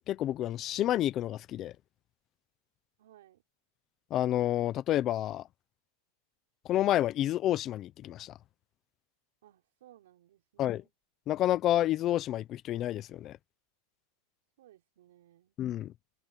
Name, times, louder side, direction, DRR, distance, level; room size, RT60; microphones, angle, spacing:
voice 1, 0.1-1.7 4.1-5.4 6.6-8.3 10.6-10.8 11.3-13.4 15.6-15.9, left 13 dB, 25° left, 0.6 m, -29 dB
voice 2, 3.0-3.4 9.4-10.9 14.6-15.6, right 13 dB, 80° right, 5.7 m, -60 dB
supercardioid pair, 170°, 0 cm